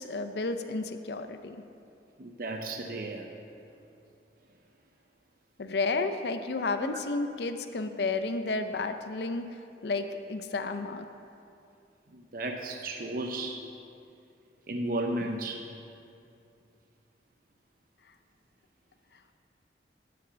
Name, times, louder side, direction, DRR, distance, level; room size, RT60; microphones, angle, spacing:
voice 1, 0.0-1.6 5.6-9.5 9.8-11.0, left 3 dB, 70° left, 8 dB, 0.5 m, -32 dB
voice 2, 2.2-3.3 6.8-7.0 12.1-13.6 14.7-15.6, right 2 dB, 50° right, 3 dB, 0.7 m, -34 dB
11.0 x 5.9 x 7.3 m, 2.6 s
head